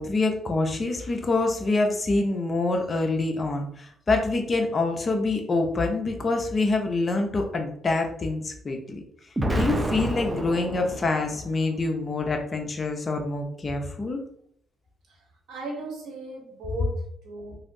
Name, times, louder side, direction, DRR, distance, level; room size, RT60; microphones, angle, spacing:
voice 1, 0.0-9.0 9.6-14.2, left 3 dB, 35° left, 3 dB, 0.6 m, -26 dB
Explosion, 9.4-11.5, right 1 dB, 20° right, 0.4 m, -28 dB
voice 2, 15.5-17.5, right 1 dB, 80° right, 0 dB, 1.0 m, -36 dB
3.2 x 2.6 x 2.6 m, 0.65 s
cardioid pair, 90°, 0 cm